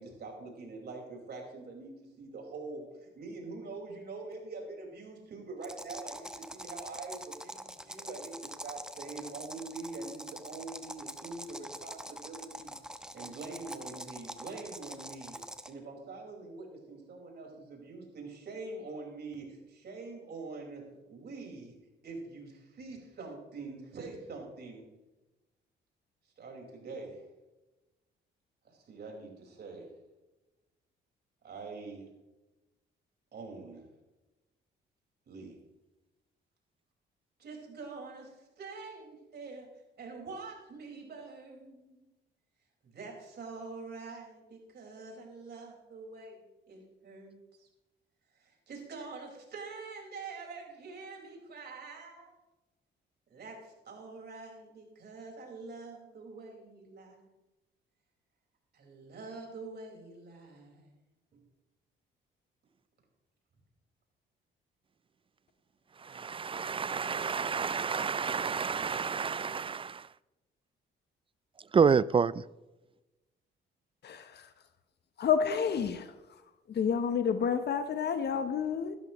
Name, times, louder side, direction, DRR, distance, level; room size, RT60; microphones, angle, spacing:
voice 1, 0.0-12.7 13.1-15.4 15.7-21.7 22.0-24.8 26.4-27.3 28.6-29.9 31.4-32.1 33.3-33.9 35.3-35.6 37.4-39.7 40.0-42.1 42.8-47.7 48.3-52.4 53.3-57.3 58.7-60.9 61.3-61.4, right 3 dB, 55° right, 4.9 m, -45 dB
sound 1, 5.6-15.8, right 1 dB, 5° right, 1.0 m, -45 dB
voice 2, 66.0-70.1 71.7-72.4, right 6 dB, 25° right, 0.4 m, -29 dB
voice 3, 74.0-74.5 75.2-76.1 76.7-79.0, left 7 dB, 55° left, 1.0 m, -29 dB
16.0 x 12.5 x 3.1 m
cardioid pair, 90°, 20 cm